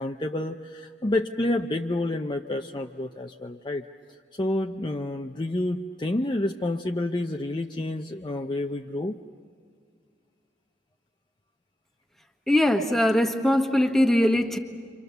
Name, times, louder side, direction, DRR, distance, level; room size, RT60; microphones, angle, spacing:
voice 1, 0.0-3.9 4.4-9.2, left 1 dB, 25° left, 3 dB, 0.6 m, -29 dB
voice 2, 12.5-14.6, left 1 dB, ahead, 4 dB, 1.3 m, -21 dB
29.5 x 25.5 x 6.8 m, 2.2 s
head